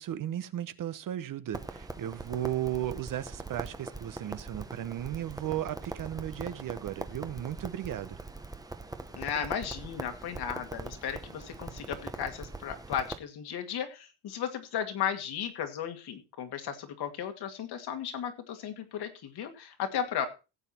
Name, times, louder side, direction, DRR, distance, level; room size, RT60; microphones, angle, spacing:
voice 1, 0.0-8.2, right 12 dB, 50° right, 13 dB, 0.9 m, -35 dB
Crackle, 1.5-13.2, right 3 dB, 10° right, 0.9 m, -42 dB
voice 2, 9.1-20.3, left 8 dB, 70° left, 6 dB, 2.3 m, -35 dB
16.0 x 8.1 x 4.3 m, 0.30 s
cardioid pair, 160°, 41 cm